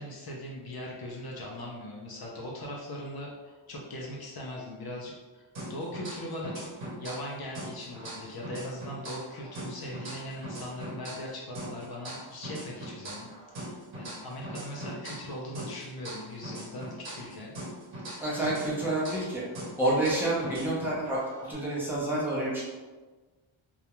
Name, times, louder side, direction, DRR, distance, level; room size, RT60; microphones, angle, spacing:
voice 1, 0.0-5.4 5.7-6.7 7.0-17.5 17.9-18.4, left 1 dB, 50° left, -3 dB, 0.5 m, -40 dB
sound 1, 5.5-7.3 7.5-11.3 11.5-15.3 15.5-19.3 19.5-21.5, right 1 dB, 65° right, 0.9 m, -41 dB
voice 2, 18.2-19.4 19.8-22.6, right 1 dB, 5° right, -8 dB, 0.6 m, -28 dB
2.3 x 2.1 x 2.9 m, 1.3 s
wide cardioid pair, 180°, 49 cm